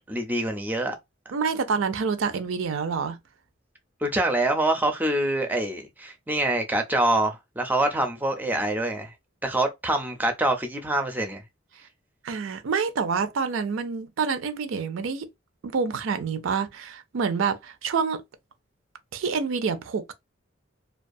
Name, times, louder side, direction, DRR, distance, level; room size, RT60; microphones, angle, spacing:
voice 1, 0.1-0.9 4.0-9.1 9.4-11.4, right 1 dB, 10° right, 0.4 m, -25 dB
voice 2, 1.3-3.2 12.2-15.3 15.6-18.2 19.1-20.1, right 5 dB, 85° right, 0.4 m, -27 dB
2.3 x 2.3 x 2.5 m
head